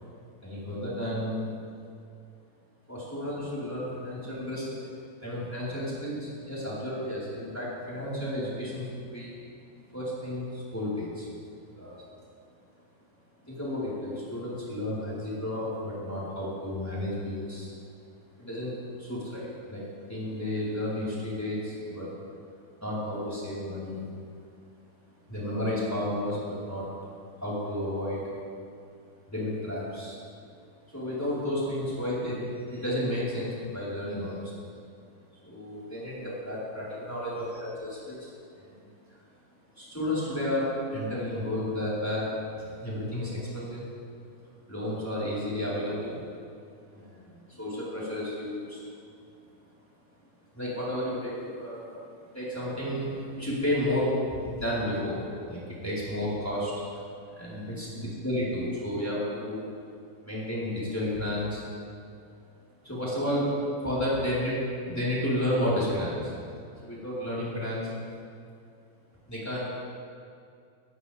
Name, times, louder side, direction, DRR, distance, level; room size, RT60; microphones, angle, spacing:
voice 1, 0.4-1.5 2.9-4.9 5.2-9.3 9.9-11.3 11.8-12.0 13.4-17.7 18.4-22.1 22.8-24.1 25.3-26.9 27.4-28.3 29.3-30.2 30.9-34.5 35.4-38.8 39.1-39.2 39.7-43.9 44.7-46.2 46.9-48.8 50.5-51.9 52.3-56.7 57.4-59.7 60.2-61.6 62.8-64.6 64.9-66.3 66.8-67.9 69.2-69.6, left 1 dB, 10° left, -9 dB, 5.1 m, -32 dB
20.5 x 17.5 x 3.8 m, 2.4 s
omnidirectional pair, 2.0 m